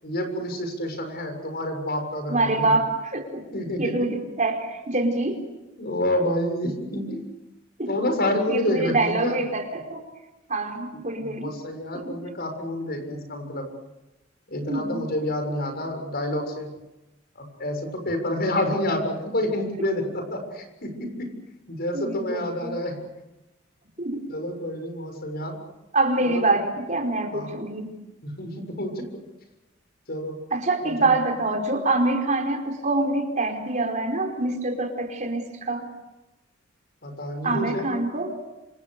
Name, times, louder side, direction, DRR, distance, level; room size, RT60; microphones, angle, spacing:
voice 1, 0.0-2.8 3.5-4.1 5.8-7.2 7.9-9.4 11.2-13.7 14.5-16.7 17.4-21.3 21.7-23.0 24.3-25.6 26.2-26.5 27.3-27.5 28.2-29.1 30.1-30.4 30.8-31.1 37.0-38.0, left 1 dB, 55° left, 5 dB, 7.1 m, -28 dB
voice 2, 2.3-3.4 3.8-5.4 7.8-7.9 8.5-10.0 10.5-11.5 11.9-12.2 14.7-15.1 21.9-22.8 24.0-24.2 25.9-27.9 30.5-35.9 37.4-38.3, right 2 dB, 40° right, 3 dB, 4.6 m, -25 dB
28.0 x 27.5 x 6.8 m, 1.0 s
head